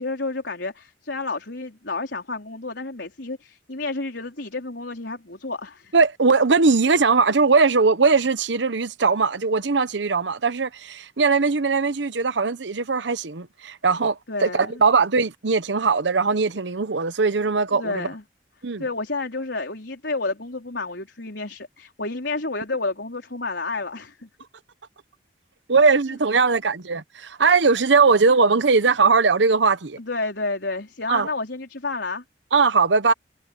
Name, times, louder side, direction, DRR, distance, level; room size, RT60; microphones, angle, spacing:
voice 1, 0.0-5.9 14.3-14.8 17.7-18.2 18.8-24.3 30.0-32.2, left 3 dB, 75° left, 4.4 m, -30 dB
voice 2, 5.9-18.1 18.6-18.8 25.7-30.0 31.1-31.3 32.5-33.1, right 4 dB, 80° right, 0.9 m, -20 dB
head